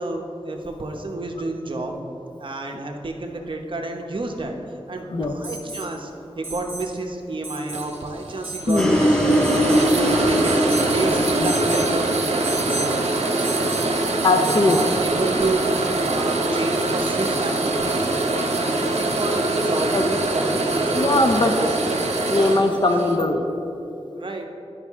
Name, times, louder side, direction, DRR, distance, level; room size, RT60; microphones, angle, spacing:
voice 1, 0.0-2.0 2.4-4.6 4.9-10.6 10.9-13.6 14.4-18.2 18.5-20.9 21.3-21.8 22.9-23.1 24.1-24.4, right 2 dB, 50° right, 2 dB, 0.9 m, -30 dB
Alarm, 5.4-5.9 6.4-6.9 7.4-7.9 8.4-8.9 9.4-10.0 10.4-10.9 11.4-11.9 12.4-12.9 13.4-13.9 14.4-14.9 16.7-16.8, right 2 dB, 20° right, 1.6 m, -34 dB
sound 1, 7.7-23.2, right 2 dB, 80° right, 0.8 m, -24 dB
voice 2, 8.7-9.0 11.4-11.5 14.2-14.8 19.9-20.0 20.9-21.5 22.3-23.5, left 2 dB, 45° left, 4 dB, 0.6 m, -20 dB
sound 2, 8.8-12.9, equal, 5° left, 0.7 m, -22 dB
11.0 x 5.5 x 3.6 m, 2.7 s
wide cardioid pair, 80°, 11 cm